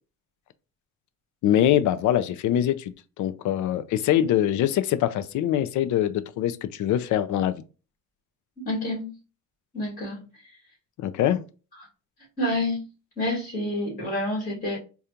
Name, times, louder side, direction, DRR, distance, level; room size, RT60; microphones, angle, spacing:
voice 1, 1.4-7.6 11.0-11.4, left 11 dB, 70° left, 0.4 m, -23 dB
voice 2, 8.7-9.1 9.7-10.3 12.4-12.9 13.2-14.8, left 1 dB, 30° left, 2.0 m, -28 dB
4.9 x 2.3 x 2.8 m
cardioid pair, 155°, 31 cm